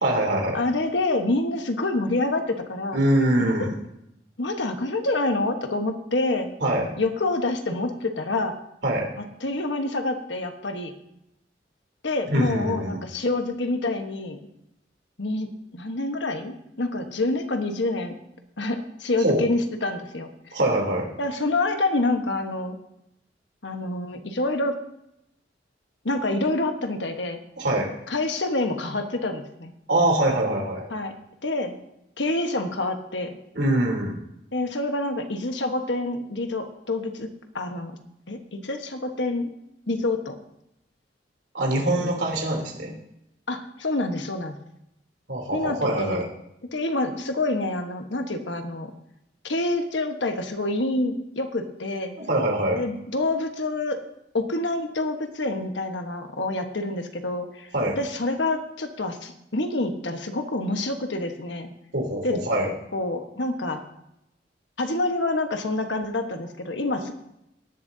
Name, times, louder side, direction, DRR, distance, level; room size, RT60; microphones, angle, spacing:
voice 1, 0.0-0.6 2.9-3.7 6.6-6.9 8.8-9.1 12.3-13.0 19.2-19.4 20.5-21.1 27.6-27.9 29.9-30.8 33.5-34.2 41.5-42.9 45.3-46.2 52.2-52.8 57.7-58.0 61.9-62.7, right 1 dB, 70° right, 0 dB, 3.3 m, -23 dB
voice 2, 0.5-3.0 3.4-3.7 4.4-6.5 7.0-8.6 9.4-10.9 12.0-14.4 15.2-18.1 18.6-20.3 21.2-22.8 23.6-24.8 26.0-27.4 28.1-29.7 30.9-31.1 31.4-31.7 32.2-33.4 34.5-37.3 37.5-37.9 38.3-39.5 39.9-40.4 41.8-42.1 43.5-44.6 45.5-46.2 46.7-48.9 49.4-52.1 52.8-54.0 54.3-57.7 58.0-61.7 62.2-62.4 62.9-63.8 64.8-67.1, left 2 dB, 80° left, 5 dB, 1.3 m, -27 dB
17.5 x 11.0 x 2.8 m, 0.82 s
head